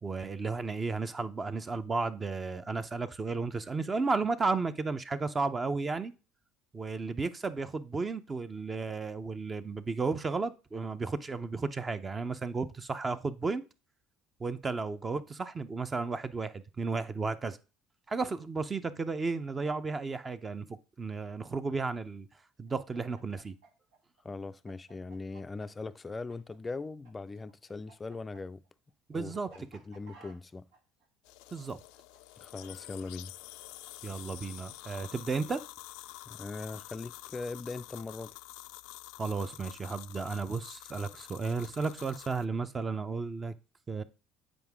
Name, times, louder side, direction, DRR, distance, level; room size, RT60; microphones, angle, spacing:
voice 1, 0.0-6.1 6.7-13.6 14.4-17.6 18.1-20.7 21.0-22.3 22.6-23.5 29.1-29.5 31.5-31.8 34.0-35.6 39.2-43.5 43.9-44.0, right 4 dB, 25° right, 0.7 m, -33 dB
Chicken rooster, 22.7-27.1 27.4-33.0, right 5 dB, 85° right, 2.2 m, -58 dB
voice 2, 24.2-28.6 29.1-30.6 32.4-33.3 36.3-38.4, left 3 dB, 20° left, 0.4 m, -40 dB
sound 1, 31.2-42.4, left 17 dB, 80° left, 0.4 m, -48 dB
7.8 x 5.0 x 3.6 m
supercardioid pair, 100°, 0 cm